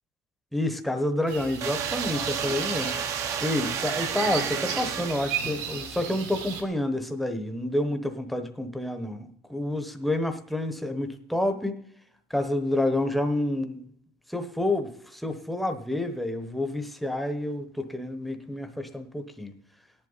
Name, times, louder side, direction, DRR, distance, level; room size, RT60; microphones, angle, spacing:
voice 1, 0.5-2.9 3.2-11.7 12.3-13.9 14.3-19.5, left 1 dB, ahead, 6 dB, 1.0 m, -29 dB
sound 1, 1.3-6.6, right 7 dB, 75° right, 2.6 m, -35 dB
sound 2, 1.6-5.6, right 7 dB, 35° right, 0.9 m, -32 dB
17.0 x 11.0 x 4.0 m, 0.69 s
cardioid pair, 165°, 8 cm